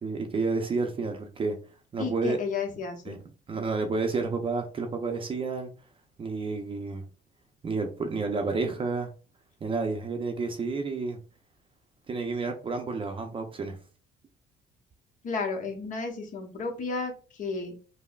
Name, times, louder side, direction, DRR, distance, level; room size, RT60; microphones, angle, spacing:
voice 1, 0.0-1.6 1.9-2.4 3.1-3.2 3.5-5.7 6.2-7.0 7.6-9.1 9.6-11.2 12.1-13.8, right 4 dB, 30° right, 5 dB, 0.6 m, -30 dB
voice 2, 2.0-3.1 15.2-17.1 17.4-17.7, left 4 dB, 50° left, 3 dB, 1.0 m, -32 dB
5.3 x 2.1 x 2.3 m, 0.36 s
cardioid pair, 110°, 17 cm